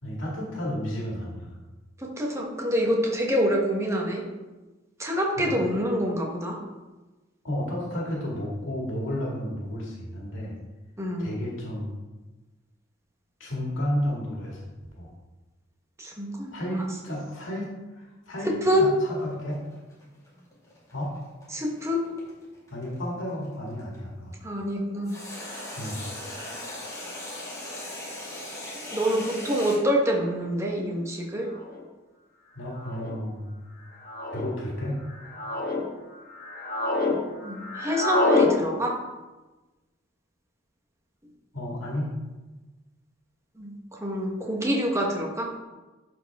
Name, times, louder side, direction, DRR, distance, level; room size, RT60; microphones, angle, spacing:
voice 1, 0.0-1.5 5.4-5.6 7.4-10.5 11.2-11.9 13.4-14.7 15.0-15.1 16.5-17.7 17.9-19.6 20.9-21.1 22.7-24.4 25.8-26.0 32.6-33.5 34.3-35.0 41.5-42.2, equal, 75° left, -3 dB, 2.0 m, -32 dB
voice 2, 2.0-4.2 5.0-6.6 11.0-11.3 16.0-16.5 18.4-18.9 21.5-22.0 24.4-25.1 28.9-31.5 37.4-38.9 43.6-45.5, equal, 15° right, -1 dB, 1.2 m, -26 dB
sound 1, 18.8-24.0 25.0-29.8, left 1 dB, 15° left, 2.1 m, -39 dB
sound 2, 30.4-30.5 31.5-31.8 32.8-33.2 34.0-34.5 35.1-35.8 36.3-37.2 37.4-38.5, left 2 dB, 45° left, 1.3 m, -27 dB
11.5 x 4.5 x 3.6 m, 1.2 s
head